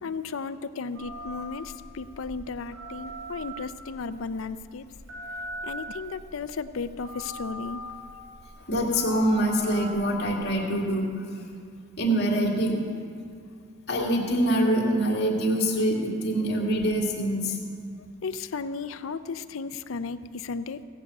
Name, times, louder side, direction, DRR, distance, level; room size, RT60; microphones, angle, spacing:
voice 1, 0.0-4.9 5.6-7.9 18.2-20.8, left 4 dB, 75° left, 12 dB, 0.5 m, -34 dB
Telephone, 0.9-10.5, right 1 dB, 85° right, 4.0 m, -41 dB
voice 2, 8.6-11.2 12.0-12.8 13.9-17.6, right 1 dB, 55° left, -2 dB, 2.4 m, -25 dB
16.5 x 6.7 x 8.4 m, 2.3 s
head